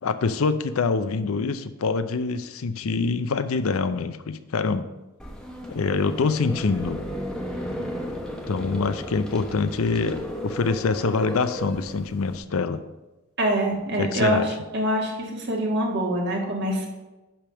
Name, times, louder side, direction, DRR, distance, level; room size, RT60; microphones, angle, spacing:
voice 1, 0.0-4.9 5.7-7.0 8.5-12.8 14.0-14.5, left 4 dB, 90° left, 12 dB, 0.5 m, -25 dB
sound 1, 5.2-12.4, equal, 5° left, 1.0 m, -34 dB
voice 2, 13.4-14.4 14.7-16.9, right 1 dB, 55° right, 0 dB, 1.6 m, -24 dB
10.0 x 3.5 x 6.2 m, 1.1 s
head